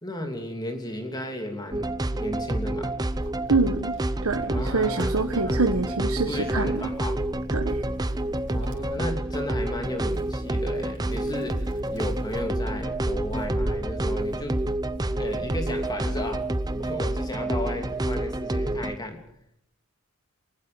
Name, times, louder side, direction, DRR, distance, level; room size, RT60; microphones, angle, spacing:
voice 1, 0.0-2.9 4.5-5.6 6.3-7.2 8.5-14.6 15.2-16.5 16.8-19.2, left 1 dB, 20° left, 5 dB, 2.8 m, -34 dB
sound 1, 1.7-19.0, right 1 dB, 20° right, 0.8 m, -28 dB
Wind, 3.0-17.1 17.6-19.1, equal, 55° right, 4.0 m, -42 dB
voice 2, 3.5-3.9 4.2-6.9 7.5-7.8, right 3 dB, 85° right, 5 dB, 1.4 m, -25 dB
21.5 x 20.0 x 7.0 m, 0.72 s
head